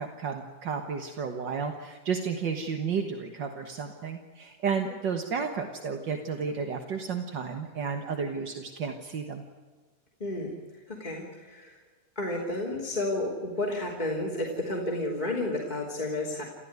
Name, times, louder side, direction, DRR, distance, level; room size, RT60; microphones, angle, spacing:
voice 1, 0.0-9.4, right 6 dB, 50° right, 5 dB, 1.5 m, -32 dB
voice 2, 10.2-10.5 10.9-11.8 12.1-16.4, left 1 dB, 15° left, -3 dB, 3.0 m, -31 dB
29.0 x 15.0 x 9.5 m, 1.5 s
omnidirectional pair, 3.6 m